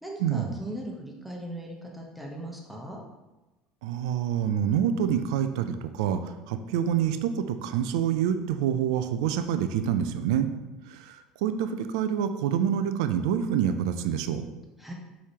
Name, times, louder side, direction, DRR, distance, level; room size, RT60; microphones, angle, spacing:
voice 1, 0.0-3.0 14.8-14.9, right 1 dB, 5° right, -1 dB, 1.0 m, -38 dB
voice 2, 3.8-6.2 6.5-10.5 10.9-14.4, right 9 dB, 75° right, 9 dB, 0.3 m, -27 dB
4.8 x 3.1 x 2.9 m, 1.0 s
hypercardioid pair, 70°, 3 cm